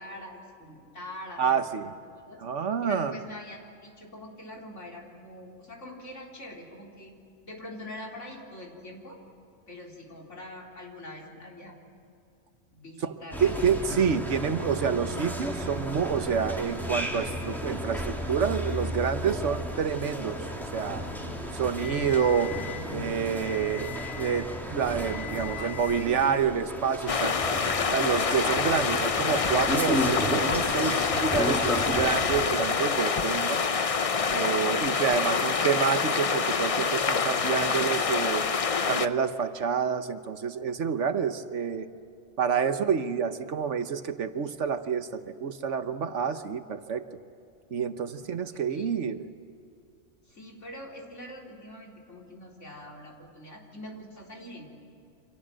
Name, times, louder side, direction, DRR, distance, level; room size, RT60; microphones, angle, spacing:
voice 1, 0.0-7.1 7.4-9.2 9.7-11.8 12.7-13.9 25.3-26.2 48.5-48.9 50.2-54.7, left 1 dB, 80° left, -1 dB, 4.1 m, -44 dB
voice 2, 1.4-1.9 2.4-3.2 13.0-13.1 13.4-20.4 20.7-21.0 21.5-22.6 22.9-23.9 24.2-27.4 27.9-33.6 34.3-38.5 38.9-41.9 42.4-47.0 47.7-49.3, right 7 dB, 80° right, 9 dB, 1.4 m, -28 dB
sound 1, 13.3-32.5, equal, ahead, 3.0 m, -34 dB
sound 2, 27.1-39.1, left 5 dB, 35° left, 0.6 m, -26 dB
29.0 x 25.5 x 7.6 m, 2.5 s
omnidirectional pair, 1.2 m